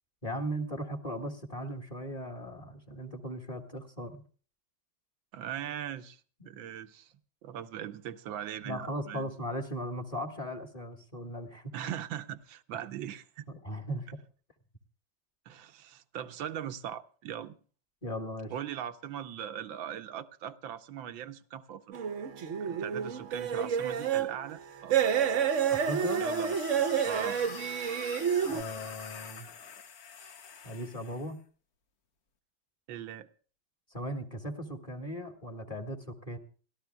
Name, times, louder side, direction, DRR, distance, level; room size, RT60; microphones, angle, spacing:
voice 1, 0.2-4.2 6.4-6.5 8.6-11.7 13.5-14.1 18.0-18.5 25.7-26.2 28.4-29.5 30.6-31.4 33.9-36.4, equal, 20° left, 1.7 m, -38 dB
voice 2, 5.3-6.2 6.5-7.1 7.4-9.3 11.7-13.5 15.5-17.5 18.5-22.0 22.6-25.0 26.2-26.6 27.0-27.4 32.9-33.3, right 10 dB, 85° right, 1.5 m, -40 dB
sound 1, 21.9-24.4 24.9-28.6, right 8 dB, 50° right, 1.0 m, -29 dB
sound 2, 25.4-31.3, left 6 dB, 55° left, 1.5 m, -46 dB
29.5 x 13.5 x 2.2 m
omnidirectional pair, 2.1 m